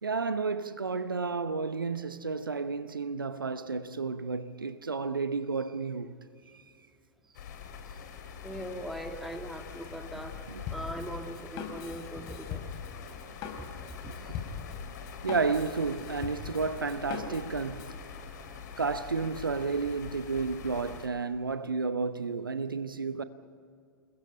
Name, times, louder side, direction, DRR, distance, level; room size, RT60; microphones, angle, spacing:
voice 1, 0.0-6.2 6.5-6.6 10.5-10.6 14.1-14.2 15.2-18.0 18.8-23.2, right 4 dB, 80° right, 0.9 m, -32 dB
sound 1, 7.3-21.1, left 6 dB, 55° left, 3.2 m, -44 dB
voice 2, 8.4-10.4 10.7-12.6 13.6-13.7 14.0-14.3, equal, ahead, 2.3 m, -40 dB
Drum kit, 10.7-18.0, left 6 dB, 40° left, 3.8 m, -41 dB
29.0 x 21.0 x 5.6 m
figure-of-eight pair, 90°, 11 cm